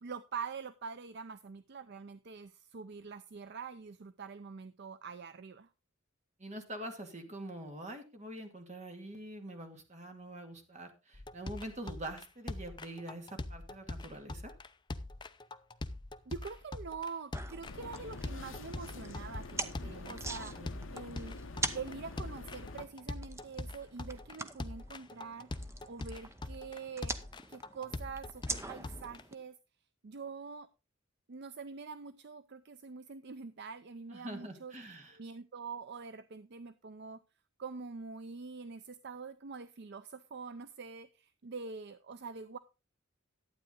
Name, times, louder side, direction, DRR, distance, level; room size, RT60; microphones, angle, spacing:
voice 1, 0.0-5.7 16.3-20.5 20.9-21.4 21.7-25.5 25.8-27.2 27.5-29.6 30.0-30.7 31.3-34.7 35.1-37.2 37.6-42.6, right 5 dB, 55° right, 13 dB, 0.5 m, -45 dB
voice 2, 6.4-14.5 19.9-20.2 20.5-20.7 34.1-35.2, right 1 dB, 35° right, 5 dB, 2.2 m, -45 dB
sound 1, 11.1-29.2, left 2 dB, 20° left, 0.6 m, -43 dB
sound 2, 17.3-29.3, right 2 dB, 15° right, 0.8 m, -44 dB
sound 3, 17.7-22.9, left 3 dB, 65° left, 0.8 m, -47 dB
12.0 x 9.0 x 3.9 m, 0.30 s
head